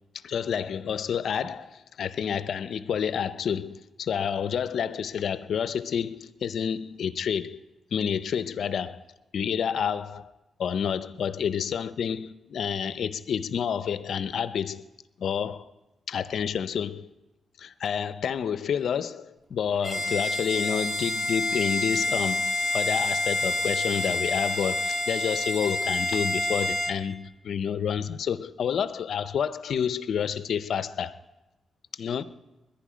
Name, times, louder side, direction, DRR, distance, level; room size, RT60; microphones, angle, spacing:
voice 1, 0.2-7.6 7.9-9.0 9.3-10.3 10.6-14.8 15.2-15.6 16.1-17.1 17.6-31.1 32.0-32.2, left 7 dB, 70° left, 0.6 m, -29 dB
Bowed string instrument, 19.8-27.0, left 1 dB, 10° right, 1.5 m, -28 dB
21.0 x 10.5 x 5.0 m
cardioid pair, 100°, 0 cm